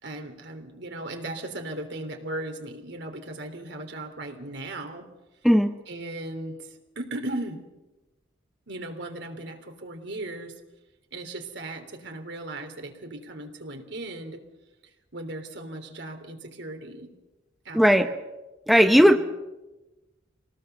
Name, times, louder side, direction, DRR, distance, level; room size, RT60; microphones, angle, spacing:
voice 1, 0.0-5.1 5.9-7.6 8.7-10.5 11.1-14.4 15.1-17.1 17.6-18.2 18.8-19.2, right 1 dB, 65° right, 5 dB, 3.3 m, -37 dB
voice 2, 17.7-18.1 18.7-19.2, equal, ahead, 6 dB, 0.8 m, -17 dB
26.0 x 18.5 x 6.9 m, 1.1 s
head